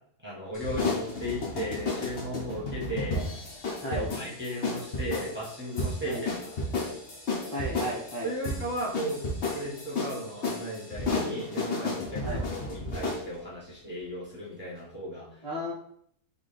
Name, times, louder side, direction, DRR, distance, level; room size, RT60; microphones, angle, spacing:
voice 1, 0.2-3.2 3.9-6.5 8.2-9.2 9.5-15.4, equal, 5° right, -6 dB, 1.3 m, -36 dB
sound 1, 0.5-13.3, left 3 dB, 50° left, 1.2 m, -33 dB
voice 2, 7.5-8.3 12.2-12.4 15.4-15.7, equal, 25° left, -10 dB, 1.0 m, -33 dB
4.2 x 3.4 x 3.4 m, 0.67 s
omnidirectional pair, 1.7 m